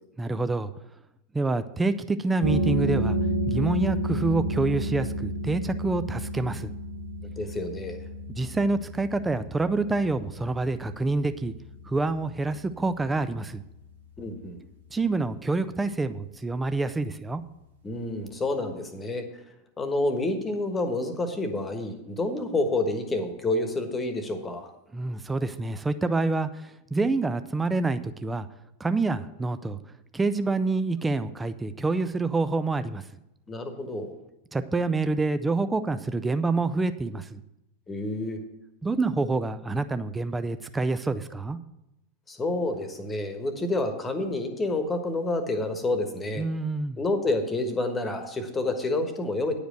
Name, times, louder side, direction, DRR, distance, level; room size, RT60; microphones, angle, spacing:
voice 1, 0.2-0.7 1.3-3.2 3.5-6.7 8.3-11.5 11.9-13.6 14.9-17.4 24.9-28.5 28.8-29.8 30.1-33.0 34.5-37.4 38.8-41.6 46.4-47.0, right 3 dB, 10° right, 12 dB, 0.4 m, -27 dB
sound 1, 2.4-13.8, right 1 dB, 70° right, 1.6 m, -31 dB
voice 2, 7.2-8.0 14.2-14.6 17.8-19.2 19.8-24.7 33.5-34.1 37.9-38.4 42.3-46.4 47.0-49.5, left 2 dB, 15° left, 7 dB, 1.3 m, -29 dB
10.0 x 5.0 x 7.7 m, 0.90 s
figure-of-eight pair, 90°, 0 cm